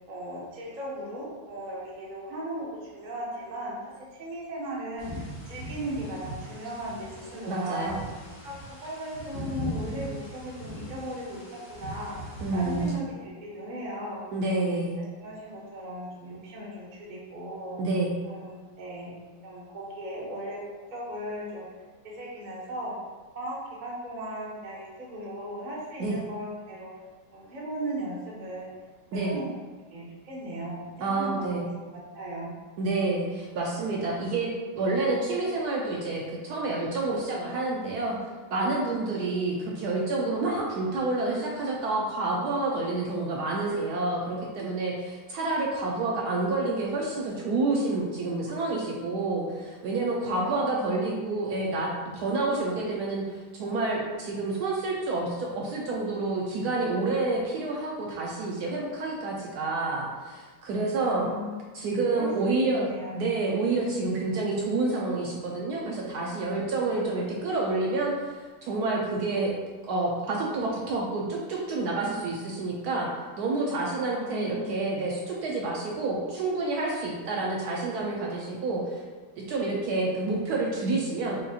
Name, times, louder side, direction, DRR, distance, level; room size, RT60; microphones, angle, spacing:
voice 1, 0.1-3.8 4.1-8.0 8.4-14.6 15.2-17.8 18.2-19.1 19.4-20.6 20.9-21.7 22.0-23.0 23.3-26.9 27.3-28.7 29.2-29.4 29.9-30.8 31.1-31.8 32.1-32.5 50.2-50.9 61.1-61.7 62.2-63.2 74.1-74.9, equal, 50° right, -5 dB, 0.5 m, -37 dB
sound 1, 5.0-12.9, right 1 dB, 50° left, 1.9 m, -39 dB
voice 2, 7.5-8.0 12.4-12.9 14.3-15.0 17.8-18.1 26.0-26.2 29.1-29.3 31.0-31.6 32.8-38.2 38.5-51.9 52.1-61.3 61.7-62.9 63.1-68.3 68.6-69.5 69.8-73.1 73.4-79.0 79.4-81.4, right 2 dB, 70° right, -3 dB, 0.9 m, -28 dB
5.2 x 2.7 x 2.4 m, 1.4 s
omnidirectional pair, 2.0 m